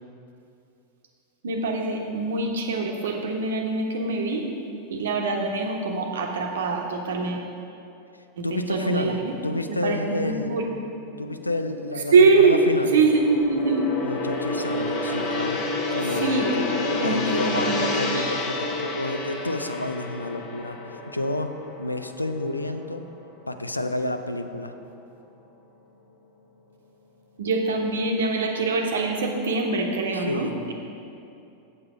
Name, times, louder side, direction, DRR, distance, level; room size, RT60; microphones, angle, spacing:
voice 1, 1.4-4.4 4.9-7.5 8.4-9.3 9.8-10.7 12.1-12.6 12.9-13.9 16.2-16.5 17.0-17.8 18.1-18.3 27.4-30.7, right 4 dB, 65° right, 2 dB, 1.1 m, -23 dB
voice 2, 8.4-9.1 9.4-10.6 11.2-12.9 14.0-15.6 15.9-23.0 23.5-24.7 30.1-30.5, left 2 dB, 85° left, 8 dB, 0.5 m, -30 dB
Gong, 10.7-23.1 23.4-23.7, left 2 dB, 40° left, 1.0 m, -30 dB
7.8 x 7.6 x 5.0 m, 2.7 s
figure-of-eight pair, 85°, 0 cm